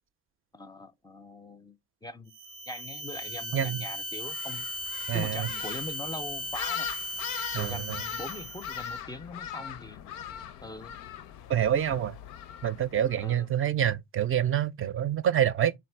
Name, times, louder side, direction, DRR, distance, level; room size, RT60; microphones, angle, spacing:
voice 1, 0.5-2.3 2.7-4.7 5.1-6.9 7.6-10.1 10.6-10.9 13.2-13.5, left 2 dB, 15° left, 0.4 m, -41 dB
sound 1, 2.3-8.9, equal, 90° right, 0.6 m, -37 dB
sound 2, 4.2-13.3, left 8 dB, 85° left, 0.5 m, -40 dB
voice 2, 5.1-5.5 7.5-8.0 11.5-12.2 12.6-15.7, right 10 dB, 45° right, 0.4 m, -27 dB
3.4 x 2.5 x 4.4 m
cardioid pair, 90°, 30 cm